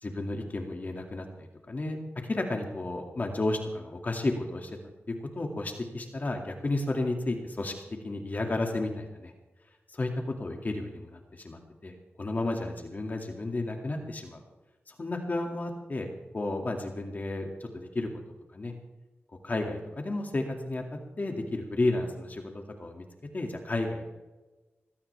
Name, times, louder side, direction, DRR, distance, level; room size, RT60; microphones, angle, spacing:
voice 1, 0.0-2.0 2.3-4.7 5.1-7.7 8.0-9.3 9.9-14.4 14.9-16.1 16.3-18.1 18.5-18.7 19.4-20.8 21.2-23.0 23.3-24.0, left 2 dB, 40° left, 2 dB, 2.3 m, -32 dB
20.5 x 17.0 x 3.5 m, 1.1 s
wide cardioid pair, 100°, 4 cm